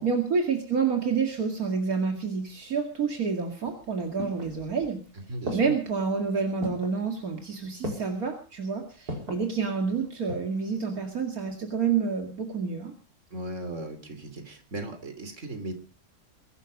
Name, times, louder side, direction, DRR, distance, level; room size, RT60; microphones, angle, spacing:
voice 1, 0.0-5.0 5.5-12.9, right 5 dB, 70° right, 3 dB, 2.6 m, -28 dB
sound 1, 3.7-5.0 5.5-6.0 6.6-7.0 7.8-8.3 9.1-9.5 10.0-10.6 10.9-11.0, equal, 85° right, 5.4 m, -36 dB
voice 2, 5.1-5.7 13.3-15.8, right 2 dB, 50° right, 8 dB, 3.5 m, -37 dB
23.0 x 12.0 x 5.2 m, 0.38 s
omnidirectional pair, 1.6 m